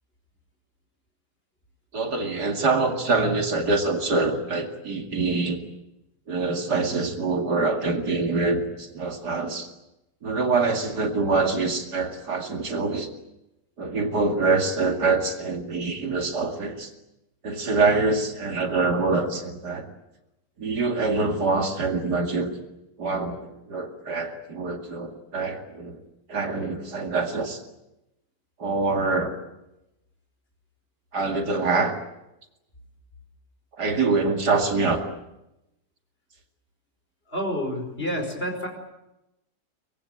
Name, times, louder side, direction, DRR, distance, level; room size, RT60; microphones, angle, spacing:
voice 1, 1.9-5.6 6.3-9.7 10.2-13.1 13.8-16.9 17.4-19.9 20.6-22.5 23.0-26.0 26.3-27.6 28.6-29.4 31.1-31.9 33.8-35.0, right 3 dB, 65° right, 4 dB, 2.9 m, -25 dB
voice 2, 37.3-38.7, equal, 35° left, 4 dB, 5.3 m, -29 dB
24.5 x 21.5 x 9.0 m, 0.91 s
omnidirectional pair, 1.9 m